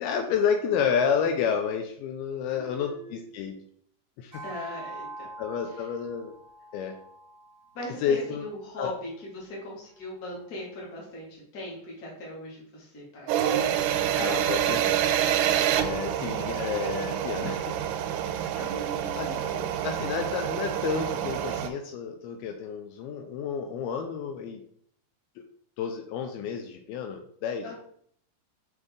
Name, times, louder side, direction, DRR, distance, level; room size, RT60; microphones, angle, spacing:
voice 1, 0.0-3.6 4.2-4.3 5.4-6.3 6.7-7.0 8.0-8.4 8.8-8.9 14.2-15.0 15.8-17.8 18.2-18.4 19.1-19.3 19.8-24.6 25.8-27.7, left 7 dB, 80° left, 5 dB, 2.4 m, -30 dB
voice 2, 2.5-3.2 4.4-5.3 5.7-5.9 7.7-13.6 13.9-14.2 18.3-20.0 27.6-27.7, left 1 dB, 30° left, -4 dB, 1.8 m, -40 dB
sound 1, 4.3-8.9, right 3 dB, 55° right, 0.8 m, -45 dB
sound 2, 13.3-21.7, right 10 dB, 90° right, 2.6 m, -27 dB
6.2 x 5.1 x 3.6 m, 0.63 s
omnidirectional pair, 4.6 m